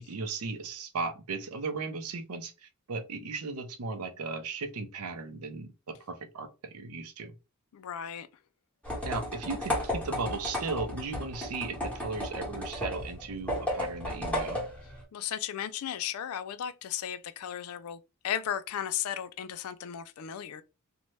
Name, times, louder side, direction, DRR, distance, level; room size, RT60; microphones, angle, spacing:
voice 1, 0.0-7.3 9.0-14.7, right 4 dB, 80° right, 0.6 m, -36 dB
voice 2, 7.7-8.3 15.1-20.6, left 9 dB, 70° left, 0.3 m, -35 dB
sound 1, 8.8-15.0, left 1 dB, 5° left, 1.1 m, -34 dB
2.6 x 2.2 x 3.1 m
head